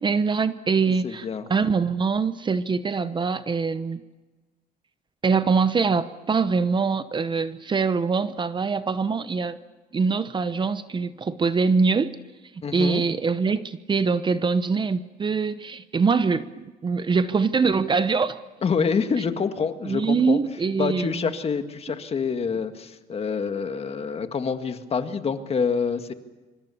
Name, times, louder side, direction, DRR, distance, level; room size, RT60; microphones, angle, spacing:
voice 1, 0.0-4.0 5.2-9.6 9.9-12.1 12.7-18.4 19.8-21.3, right 5 dB, 30° right, 13 dB, 0.9 m, -23 dB
voice 2, 1.0-1.5 12.6-13.0 18.6-20.4 20.8-26.1, left 5 dB, 35° left, 8 dB, 1.9 m, -27 dB
25.5 x 25.0 x 7.1 m, 1.2 s
cardioid pair, 110°, 17 cm